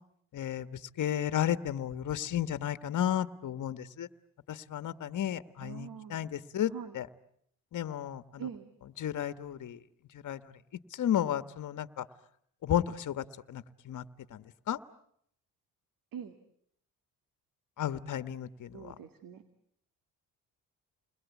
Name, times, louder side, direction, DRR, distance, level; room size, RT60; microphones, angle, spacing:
voice 1, 0.3-4.1 4.5-7.1 7.7-8.4 9.0-9.8 10.2-10.5 10.9-12.0 12.6-14.0 14.3-14.8 17.8-18.9, left 10 dB, 55° left, 13 dB, 1.4 m, -33 dB
voice 2, 5.6-6.3 6.7-7.0 8.4-8.7 16.1-16.4 18.7-19.4, right 8 dB, 65° right, 9 dB, 2.3 m, -43 dB
30.0 x 22.0 x 8.4 m, 0.68 s
cardioid pair, 85°, 37 cm